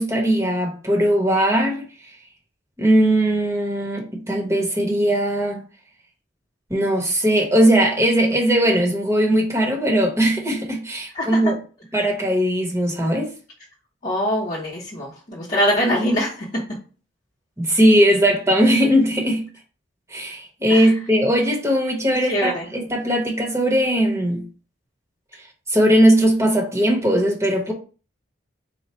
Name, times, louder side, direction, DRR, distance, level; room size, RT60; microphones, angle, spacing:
voice 1, 0.0-1.8 2.8-5.6 6.7-11.5 11.9-13.3 17.6-19.4 20.1-24.4 25.7-27.7, equal, 15° right, 1.1 m, -19 dB
voice 2, 11.1-11.5 14.0-16.5 20.7-20.9 22.1-22.7, equal, 40° left, 1.0 m, -23 dB
4.3 x 2.3 x 4.3 m
head